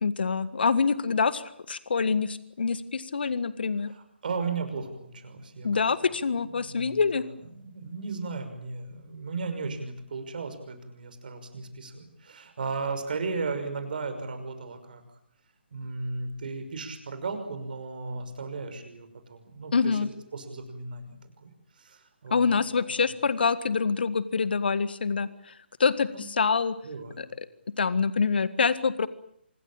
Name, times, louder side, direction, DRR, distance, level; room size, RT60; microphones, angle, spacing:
voice 1, 0.0-3.9 5.6-7.2 19.7-20.1 22.3-25.5 25.8-26.8 27.2-27.3 27.8-29.1, left 5 dB, 60° left, 15 dB, 1.7 m, -26 dB
voice 2, 3.9-5.7 6.0-6.1 6.5-15.0 15.7-20.0 20.3-23.1 26.1-26.2 26.8-27.2, right 4 dB, 50° right, 7 dB, 5.8 m, -36 dB
26.0 x 22.0 x 8.9 m, 0.71 s
figure-of-eight pair, 140°, 6 cm